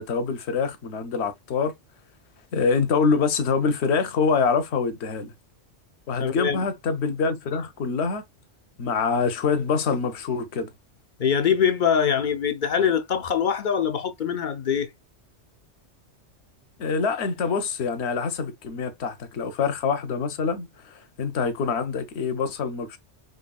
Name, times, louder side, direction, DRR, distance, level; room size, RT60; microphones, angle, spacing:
voice 1, 0.0-1.7 2.5-5.3 6.1-8.2 8.8-10.7 16.8-23.0, left 5 dB, 70° left, 1.1 m, -25 dB
voice 2, 6.2-6.6 11.2-14.9, left 7 dB, 55° left, 0.6 m, -23 dB
5.4 x 3.1 x 2.3 m
omnidirectional pair, 1.2 m